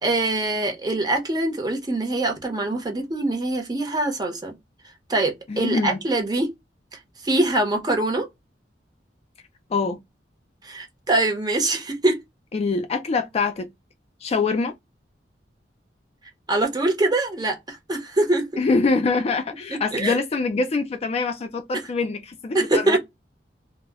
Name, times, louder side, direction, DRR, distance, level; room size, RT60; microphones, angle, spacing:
voice 1, 0.0-4.5 5.1-6.5 7.2-8.3 10.6-12.2 16.5-18.5 19.7-20.2 22.5-23.0, right 2 dB, 25° right, 0.7 m, -23 dB
voice 2, 5.5-6.0 9.7-10.0 12.5-13.7 14.2-14.7 18.6-23.0, left 4 dB, 35° left, 0.3 m, -24 dB
2.0 x 2.0 x 3.4 m
head